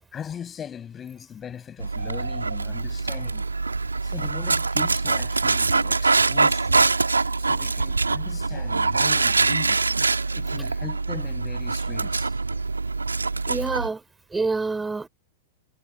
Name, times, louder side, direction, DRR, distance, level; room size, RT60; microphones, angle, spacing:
voice 1, 0.1-3.4 4.0-9.9 10.3-12.4, left 8 dB, 20° left, 7.5 m, -39 dB
Dog, 1.8-13.9, right 3 dB, 80° right, 3.4 m, -24 dB
voice 2, 13.5-14.0 14.3-15.1, right 3 dB, 10° right, 5.5 m, -26 dB
figure-of-eight pair, 95°, 0 cm